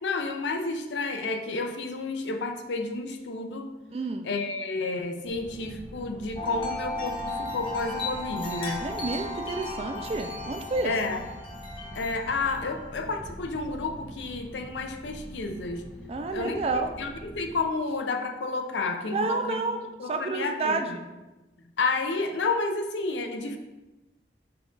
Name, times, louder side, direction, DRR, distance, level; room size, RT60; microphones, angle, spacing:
voice 1, 0.0-3.7 4.2-8.8 10.8-11.2 11.9-15.9 16.3-16.6 17.0-19.6 20.0-21.0 21.8-23.6, left 3 dB, 85° left, 5 dB, 0.5 m, -30 dB
voice 2, 3.9-4.3 8.8-10.9 16.1-16.9 19.1-19.8 20.1-21.0, right 3 dB, 35° right, 6 dB, 0.3 m, -30 dB
sound 1, 5.2-17.5, equal, 5° right, 0.7 m, -44 dB
Wind chime, 6.4-12.9, left 2 dB, 30° left, 0.8 m, -36 dB
5.8 x 2.4 x 3.7 m, 1.1 s
head